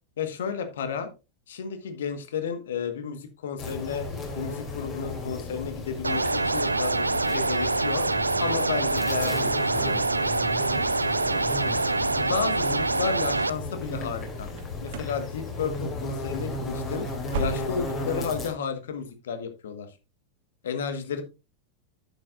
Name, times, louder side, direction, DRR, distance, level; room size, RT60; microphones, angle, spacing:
voice 1, 0.2-1.1 1.5-4.0 4.3-8.1 8.4-10.0 12.0-14.5 14.8-17.1 17.4-19.9 20.6-21.2, left 6 dB, 60° left, 9 dB, 1.3 m, -32 dB
sound 1, 3.6-18.5, left 2 dB, 25° left, 2.9 m, -34 dB
sound 2, 6.0-13.5, right 3 dB, 80° right, 0.4 m, -25 dB
sound 3, 14.5-15.2 15.5-15.9 16.2-16.4 16.8-18.1 18.4-18.5 19.0-19.1, right 2 dB, 50° right, 1.4 m, -35 dB
10.5 x 8.2 x 2.4 m, 0.29 s
figure-of-eight pair, 90°, 0 cm